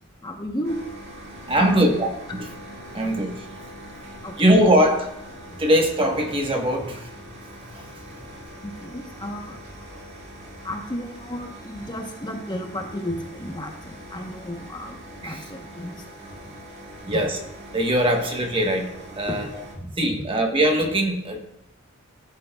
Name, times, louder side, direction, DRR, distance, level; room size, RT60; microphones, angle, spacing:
voice 1, 0.2-0.8 1.5-2.0 4.2-4.7 5.5-5.6 8.6-10.0 10.6-16.1 17.1-17.2 19.5-20.4, equal, 20° left, 3 dB, 0.9 m, -33 dB
sound 1, 0.6-19.7, right 1 dB, 55° right, 1.9 m, -42 dB
voice 2, 1.5-2.1 2.3-2.5 2.9-3.5 4.4-5.1 5.6-7.3 7.6-7.9 15.2-15.5 17.1-17.4 17.7-19.5 20.0-21.4, equal, 25° right, 3 dB, 1.1 m, -21 dB
13.5 x 7.3 x 2.3 m, 0.78 s
head